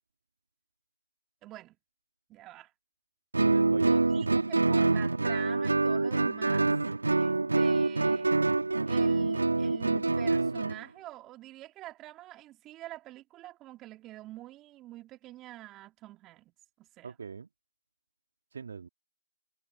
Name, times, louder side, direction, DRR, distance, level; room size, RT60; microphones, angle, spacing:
voice 1, 1.4-1.8 2.3-2.7 3.7-6.7 7.2-8.3 8.9-16.5 16.8-17.1, right 16 dB, 10° right, 2.9 m, -46 dB
Guitar, 3.3-10.8, right 3 dB, 55° right, 3.7 m, -26 dB
voice 2, 3.4-3.9 17.0-17.5 18.5-18.9, right 6 dB, 35° right, 3.6 m, -41 dB
figure-of-eight pair, 165°, 0 cm